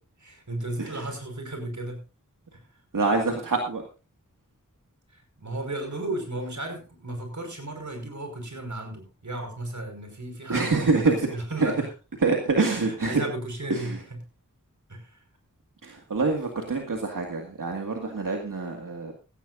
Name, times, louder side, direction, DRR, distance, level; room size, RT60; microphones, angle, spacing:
voice 1, 0.3-2.0 2.5-2.6 5.1-11.7 12.8-13.9 14.9-15.2, right 1 dB, 65° right, 4 dB, 5.4 m, -34 dB
voice 2, 2.9-3.8 10.5-11.2 11.6-11.7 12.2-13.2 13.7-14.0 15.8-19.1, right 3 dB, 90° right, 2 dB, 2.1 m, -26 dB
17.0 x 15.0 x 2.6 m, 0.32 s
wide cardioid pair, 60°, 31 cm